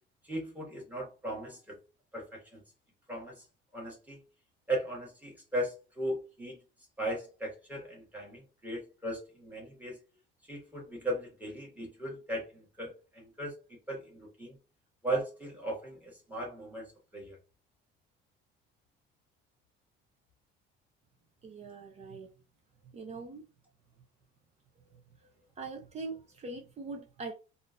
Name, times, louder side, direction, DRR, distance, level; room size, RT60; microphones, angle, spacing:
voice 1, 0.2-1.7 2.1-2.6 3.1-3.4 3.7-4.2 4.7-6.6 7.0-10.0 10.5-13.5 13.9-14.5 15.0-16.9 17.1-17.4, right 1 dB, 10° right, 1.5 m, -37 dB
voice 2, 21.4-22.3 22.9-23.4 24.9-25.0 25.6-27.3, right 3 dB, 30° right, 0.5 m, -42 dB
3.6 x 2.5 x 2.4 m
cardioid pair, 140°, 21 cm